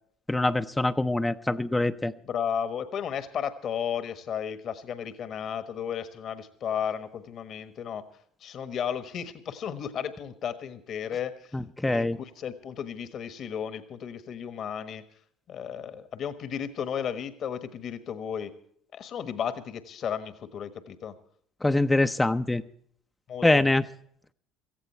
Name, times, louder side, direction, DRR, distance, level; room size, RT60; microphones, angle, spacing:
voice 1, 0.3-2.1 11.5-12.2 21.6-22.6 23.4-23.8, left 2 dB, 10° left, 8 dB, 0.6 m, -24 dB
voice 2, 2.2-8.0 8.4-11.6 11.8-15.0 15.5-18.5 18.9-21.1 23.3-23.6, left 8 dB, 50° left, 12 dB, 1.3 m, -34 dB
17.0 x 14.5 x 4.5 m, 0.64 s
hypercardioid pair, 65°, 0 cm